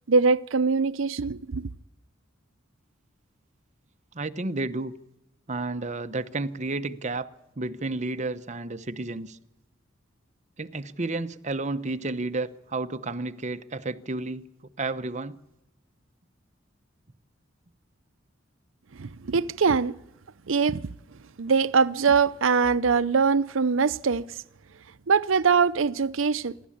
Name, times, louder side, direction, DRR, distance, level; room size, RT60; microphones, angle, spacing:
voice 1, 0.1-1.7 19.0-20.0 20.5-20.8 21.4-24.3 25.1-26.5, right 5 dB, 80° right, 0.6 m, -22 dB
voice 2, 4.1-4.9 5.5-7.3 7.6-9.4 10.6-14.4 14.8-15.4, right 2 dB, 35° right, 0.9 m, -31 dB
26.5 x 12.5 x 8.7 m
head